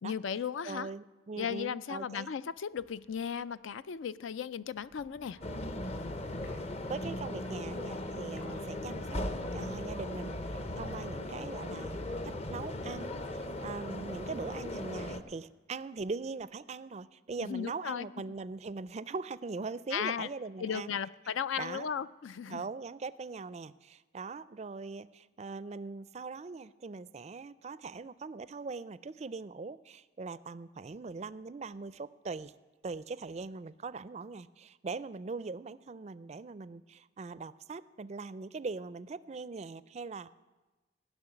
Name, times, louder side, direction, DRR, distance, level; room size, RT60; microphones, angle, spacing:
voice 1, 0.0-0.9 1.4-5.4 17.4-18.1 19.9-20.3 20.6-22.6, left 7 dB, 80° left, 16 dB, 0.4 m, -36 dB
voice 2, 0.6-2.3 6.9-9.2 9.5-20.9 21.6-21.9 22.5-32.5 32.8-40.3, right 4 dB, 35° right, 16 dB, 0.4 m, -41 dB
sound 1, 2.3-10.8, left 1 dB, 50° left, 4.6 m, -59 dB
sound 2, 5.4-15.2, left 1 dB, 35° left, 0.7 m, -38 dB
15.5 x 6.3 x 9.8 m, 1.2 s
head